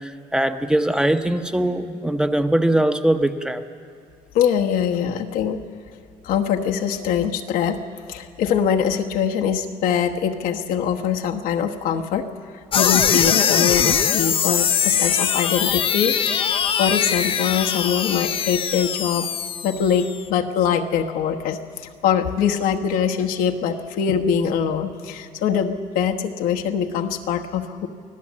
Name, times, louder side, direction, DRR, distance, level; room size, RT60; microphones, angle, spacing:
voice 1, 0.0-3.6, right 1 dB, 5° right, 8 dB, 0.8 m, -21 dB
voice 2, 4.3-5.6 6.2-7.8 8.1-12.2 12.5-19.3 19.6-21.6 22.0-27.9, left 8 dB, 85° left, 3 dB, 1.2 m, -23 dB
sound 1, 12.7-20.2, left 8 dB, 40° left, 0.6 m, -21 dB
24.0 x 16.0 x 7.4 m, 2.2 s
cardioid pair, 115°, 14 cm